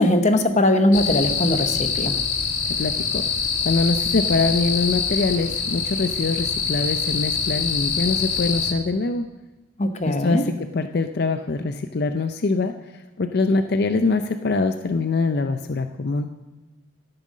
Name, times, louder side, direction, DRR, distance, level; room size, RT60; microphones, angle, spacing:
voice 1, 0.0-2.2 9.8-10.4, left 1 dB, 35° left, 7 dB, 0.9 m, -20 dB
sound 1, 0.9-8.7, left 5 dB, 80° left, 1.2 m, -25 dB
voice 2, 2.7-3.2 3.6-9.3 10.1-12.7 13.2-16.3, left 3 dB, 50° left, 7 dB, 0.5 m, -23 dB
14.0 x 7.8 x 6.3 m, 1.2 s
head